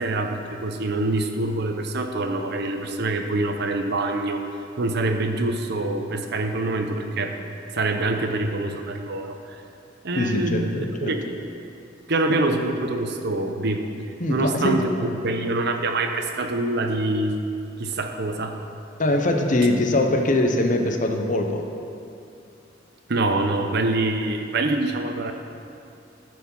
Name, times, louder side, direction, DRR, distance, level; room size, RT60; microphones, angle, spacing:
voice 1, 0.0-4.4 4.8-7.3 7.7-9.6 10.0-11.2 12.1-17.4 17.8-18.6 23.1-25.3, right 2 dB, 60° right, 5 dB, 0.8 m, -25 dB
voice 2, 10.2-11.1 14.2-14.9 19.0-21.6, left 1 dB, 45° left, 4 dB, 0.8 m, -22 dB
14.0 x 4.6 x 5.4 m, 2.6 s
head